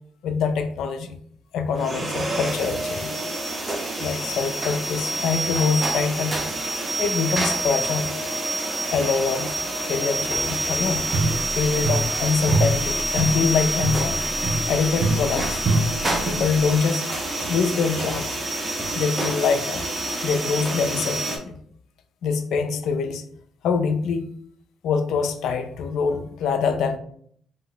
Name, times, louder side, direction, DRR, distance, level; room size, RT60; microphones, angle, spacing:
voice 1, 0.2-1.2 1.5-3.1 4.0-6.4 7.0-8.1 8.9-9.5 9.8-11.1 11.6-14.2 14.7-15.6 16.3-17.0 17.5-18.4 18.9-19.9 20.2-21.6 22.2-23.2 23.6-24.2 24.8-27.0, left 5 dB, 80° left, 8 dB, 0.4 m, -24 dB
sound 1, 1.7-21.4, right 1 dB, 30° right, 0.8 m, -27 dB
sound 2, 11.1-12.2 12.5-16.6, right 2 dB, 70° right, 0.5 m, -25 dB
2.8 x 2.1 x 3.9 m, 0.64 s
cardioid pair, 90°, 0 cm